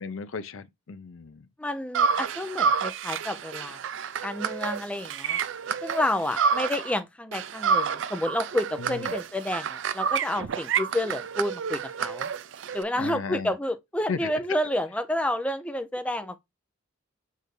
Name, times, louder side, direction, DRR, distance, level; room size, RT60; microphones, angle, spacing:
voice 1, 0.0-1.5 8.8-9.1 13.0-13.5 14.1-14.3, left 5 dB, 90° left, 0.5 m, -35 dB
voice 2, 1.6-3.8 4.2-5.4 5.8-12.3 12.7-16.4, left 1 dB, 5° left, 0.4 m, -30 dB
sound 1, 1.9-7.0 7.3-12.8, right 6 dB, 70° right, 0.4 m, -29 dB
6.5 x 2.6 x 3.1 m
head